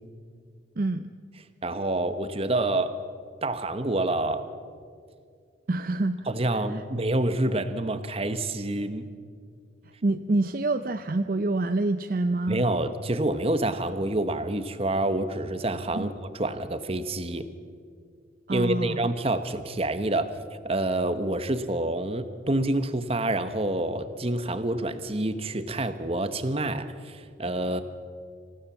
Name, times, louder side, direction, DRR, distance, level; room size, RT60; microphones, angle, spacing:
voice 1, 0.8-1.1 5.7-6.8 10.0-12.7 15.9-16.1 18.5-19.1, right 2 dB, 45° right, 9 dB, 0.6 m, -27 dB
voice 2, 1.6-3.0 3.4-4.5 6.3-9.1 12.5-17.5 18.5-20.3 20.6-27.8, right 1 dB, 30° right, 11 dB, 1.1 m, -27 dB
26.5 x 16.0 x 7.3 m, 2.2 s
head